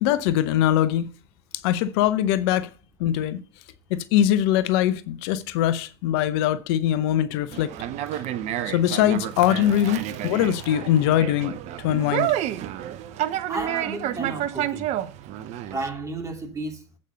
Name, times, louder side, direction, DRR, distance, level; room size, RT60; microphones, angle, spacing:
voice 1, 0.0-1.1 1.6-2.7 3.0-3.4 3.9-7.7 8.7-11.6 11.8-12.3, left 11 dB, 65° left, 0.7 m, -22 dB
Conversation, 7.5-15.9, right 12 dB, 50° right, 0.8 m, -30 dB
voice 2, 13.5-14.9 15.7-16.8, right 2 dB, 20° right, 2.9 m, -32 dB
8.2 x 5.3 x 6.7 m
hypercardioid pair, 85°, 14 cm